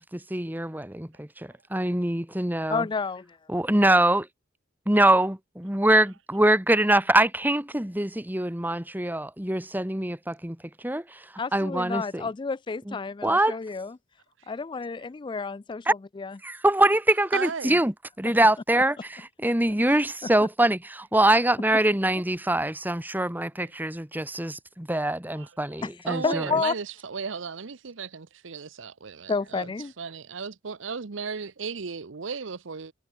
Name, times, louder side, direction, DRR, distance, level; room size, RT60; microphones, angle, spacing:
voice 1, 0.0-2.9 3.5-4.3 4.9-12.3 12.9-13.0 13.2-13.6 15.9-16.0 16.4-26.5, right 1 dB, 10° right, 1.8 m, -24 dB
voice 2, 2.7-3.4 11.4-13.9 14.5-16.3 21.3-21.4 25.8-25.9 26.2-26.7 29.3-29.9, left 4 dB, 25° left, 0.3 m, -30 dB
voice 3, 17.3-17.8 25.4-25.5 26.1-29.7 30.0-32.9, right 5 dB, 75° right, 0.8 m, -35 dB
head